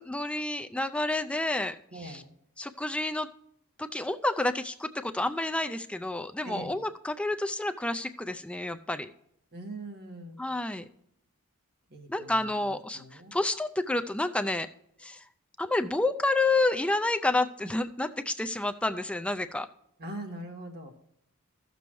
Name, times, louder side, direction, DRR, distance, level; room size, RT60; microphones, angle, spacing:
voice 1, 0.0-2.2 2.6-3.3 3.8-9.1 10.4-10.8 12.1-14.7 15.0-15.2 15.6-19.7, left 2 dB, 5° left, 9 dB, 0.3 m, -29 dB
voice 2, 1.9-2.3 6.4-6.8 9.5-10.4 11.9-13.3 20.0-20.9, right 1 dB, 50° right, 2 dB, 1.7 m, -42 dB
14.5 x 6.8 x 3.1 m, 0.73 s
head